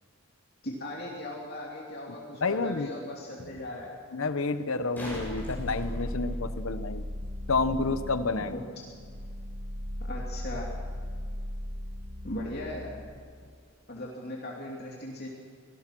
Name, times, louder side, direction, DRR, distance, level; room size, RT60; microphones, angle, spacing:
voice 1, 0.6-3.9 8.3-8.6 10.0-10.7 12.2-12.9 13.9-15.3, left 1 dB, 50° left, -2 dB, 3.1 m, -38 dB
voice 2, 2.4-2.9 4.1-7.0 7.5-8.5, left 3 dB, 70° left, 11 dB, 1.0 m, -29 dB
sound 1, 5.0-6.7 9.6-9.7, equal, 10° left, 7.0 m, -42 dB
sound 2, 5.1-13.1, left 1 dB, 70° right, 2.4 m, -37 dB
25.5 x 19.0 x 6.2 m, 2.1 s
head